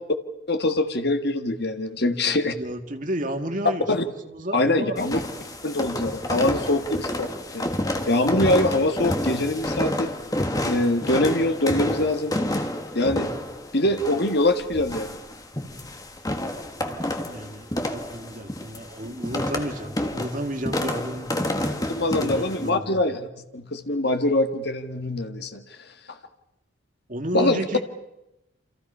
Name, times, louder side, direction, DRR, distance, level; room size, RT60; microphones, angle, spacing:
voice 1, 0.5-2.5 3.9-4.0 4.5-5.2 5.6-7.7 8.1-10.1 10.6-12.3 12.9-13.3 13.7-15.2 21.9-25.6 27.3-27.6, left 1 dB, 55° left, 7 dB, 1.8 m, -23 dB
voice 2, 2.5-5.0 16.8-21.5 22.1-23.0 27.1-27.8, right 1 dB, 40° right, 5 dB, 2.0 m, -32 dB
sound 1, 5.0-22.7, left 1 dB, 20° left, 1.7 m, -29 dB
28.5 x 26.5 x 5.6 m, 0.91 s
head